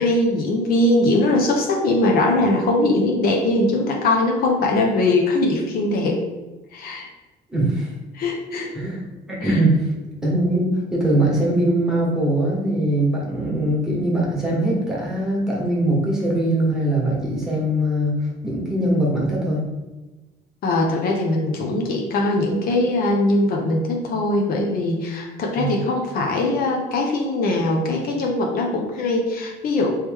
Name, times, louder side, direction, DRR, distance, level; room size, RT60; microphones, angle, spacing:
voice 1, 0.0-6.2 6.7-7.1 8.1-8.7 9.4-9.6 20.6-29.9, left 2 dB, 60° left, 1 dB, 0.6 m, -21 dB
voice 2, 7.5-7.9 8.7-9.9 10.2-19.7 25.6-25.7, right 1 dB, 5° right, -5 dB, 1.3 m, -21 dB
3.1 x 3.0 x 3.5 m, 1.1 s
cardioid pair, 110°, 17 cm